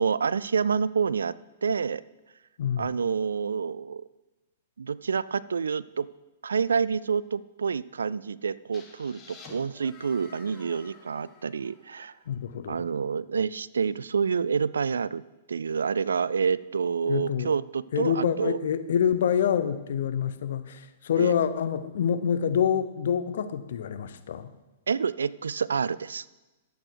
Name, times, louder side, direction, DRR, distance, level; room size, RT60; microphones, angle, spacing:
voice 1, 0.0-1.3 1.6-2.0 2.8-4.0 4.8-6.1 6.4-12.1 12.7-15.2 15.5-18.6 21.2-21.3 24.9-26.2, right 6 dB, 85° right, 20 dB, 0.3 m, -28 dB
sound 1, 8.7-12.5, left 4 dB, 25° left, 1.6 m, -51 dB
voice 2, 12.3-12.8 17.0-17.5 17.9-24.5, left 8 dB, 70° left, 12 dB, 0.7 m, -26 dB
12.0 x 7.9 x 4.6 m, 1.1 s
hypercardioid pair, 115°, 0 cm